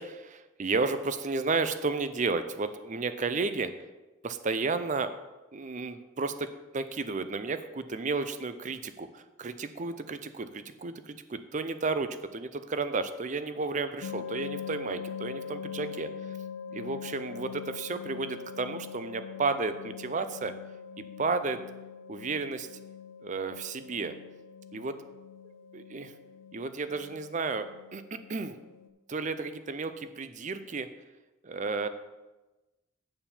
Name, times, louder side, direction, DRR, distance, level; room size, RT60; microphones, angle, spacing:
voice 1, 0.0-3.7 4.2-5.1 5.5-6.5 6.7-16.1 16.7-20.5 21.2-21.6 22.1-22.7 23.2-24.1 24.7-24.9 25.4-26.1 26.5-27.7 27.9-28.6 29.1-30.9 31.4-31.9, right 4 dB, 40° right, 11 dB, 0.5 m, -32 dB
sound 1, 14.0-28.9, left 7 dB, 75° left, 0.6 m, -43 dB
8.8 x 4.4 x 7.1 m, 1.1 s
head